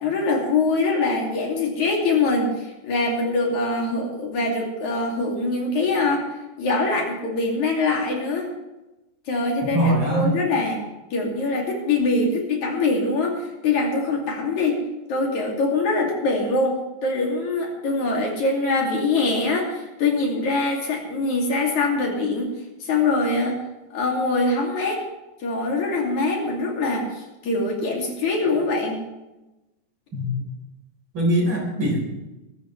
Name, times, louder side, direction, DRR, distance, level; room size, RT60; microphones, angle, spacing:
voice 1, 0.0-6.2 6.6-8.5 9.3-10.8 11.1-14.8 15.1-22.5 22.8-23.6 23.9-25.0 25.4-29.0, left 3 dB, 65° left, -1 dB, 4.0 m, -23 dB
voice 2, 9.6-10.3 30.1-30.3 31.1-32.1, right 1 dB, 35° right, -1 dB, 5.0 m, -22 dB
22.5 x 13.0 x 3.3 m, 1.0 s
omnidirectional pair, 3.7 m